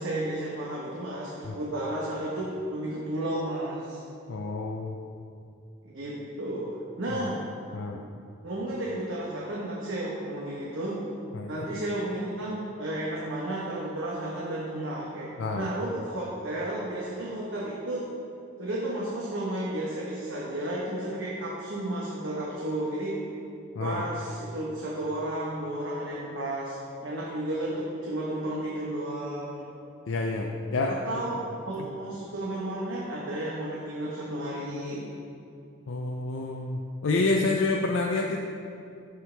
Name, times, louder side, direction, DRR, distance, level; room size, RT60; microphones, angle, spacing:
voice 1, 0.0-4.0 5.8-7.4 8.4-11.0 11.5-15.3 15.5-18.1 18.6-23.2 23.8-29.7 30.9-35.0, right 1 dB, 70° right, -5 dB, 1.1 m, -33 dB
voice 2, 4.3-5.0 7.1-7.3 7.7-8.0 11.3-11.5 15.4-15.7 23.7-24.0 30.1-31.0 35.9-38.4, left 3 dB, 75° left, 1 dB, 0.5 m, -28 dB
13.0 x 4.7 x 3.4 m, 2.6 s
head